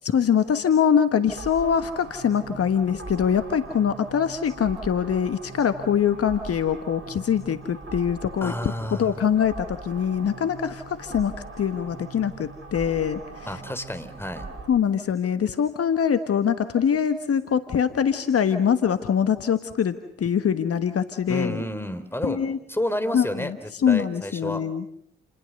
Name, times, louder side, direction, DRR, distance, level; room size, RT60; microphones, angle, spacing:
voice 1, 0.0-8.7 9.0-13.6 14.7-21.6 22.2-22.6 23.1-24.8, left 8 dB, 50° left, 10 dB, 1.5 m, -23 dB
sound 1, 1.3-14.7, right 3 dB, 45° right, 6.5 m, -41 dB
voice 2, 8.4-9.1 13.5-14.5 21.3-22.4 22.7-24.6, left 1 dB, 10° left, 10 dB, 4.0 m, -30 dB
30.0 x 21.0 x 6.7 m, 0.72 s
hypercardioid pair, 40°, 29 cm